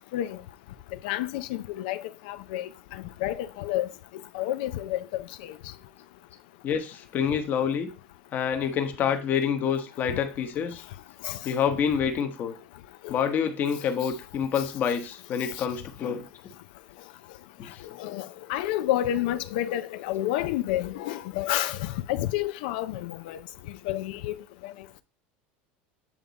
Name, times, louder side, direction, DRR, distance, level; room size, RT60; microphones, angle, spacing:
voice 1, 1.0-2.7 3.2-3.9 4.3-5.5 11.2-11.4 13.0-13.1 18.0-23.4 23.9-24.3 24.6-24.7, left 13 dB, 75° left, 0.5 m, -29 dB
voice 2, 6.6-7.9 8.3-10.8 11.4-12.6 13.1-16.2, left 7 dB, 35° left, 1.1 m, -27 dB
8.7 x 3.7 x 4.0 m
supercardioid pair, 145°, 5 cm